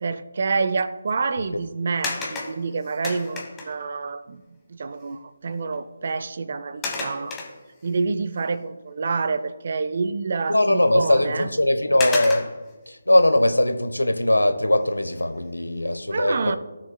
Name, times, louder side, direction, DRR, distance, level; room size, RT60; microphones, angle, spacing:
voice 1, 0.0-7.4 7.8-11.5 16.1-16.6, right 4 dB, 45° right, 12 dB, 0.5 m, -27 dB
sound 1, 2.0-3.9 5.1-5.2 5.6-5.8 6.8-8.0 8.5-8.6 11.0-11.1 12.0-12.7 15.0-15.4 15.9-16.0, left 3 dB, 10° left, 1.2 m, -32 dB
voice 2, 10.5-12.5 12.9-16.6, left 1 dB, 80° left, 8 dB, 0.9 m, -20 dB
19.0 x 6.5 x 2.2 m, 1.2 s
figure-of-eight pair, 150°, 0 cm